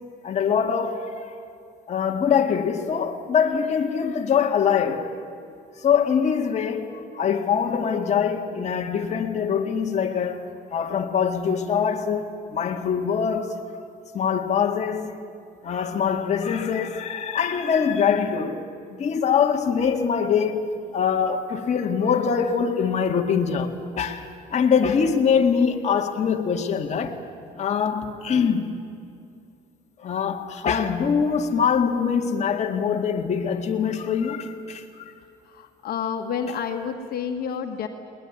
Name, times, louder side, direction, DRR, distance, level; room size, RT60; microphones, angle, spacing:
voice 1, 0.2-1.3 1.9-5.2 5.8-13.6 14.1-15.2 15.6-27.2 27.6-28.8 30.0-35.1, left 7 dB, 40° left, 1.9 m, -23 dB
voice 2, 35.4-37.9, left 7 dB, 65° left, 1.7 m, -29 dB
21.0 x 20.5 x 9.5 m
cardioid pair, 110°, 17 cm